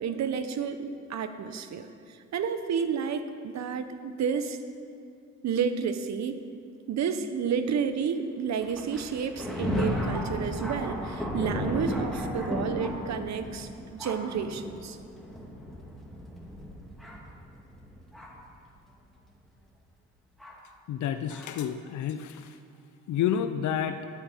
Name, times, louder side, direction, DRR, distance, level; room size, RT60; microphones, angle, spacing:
voice 1, 0.0-4.6 5.4-6.4 6.9-15.0, right 7 dB, 65° right, 9 dB, 1.0 m, -31 dB
Thunder, 8.6-18.5 19.3-19.4 20.4-20.6 21.3-21.5, left 1 dB, ahead, 2.4 m, -34 dB
voice 2, 20.9-22.6 23.1-24.1, left 9 dB, 70° left, 9 dB, 0.6 m, -29 dB
9.6 x 8.4 x 9.2 m, 2.3 s
cardioid pair, 90°, 30 cm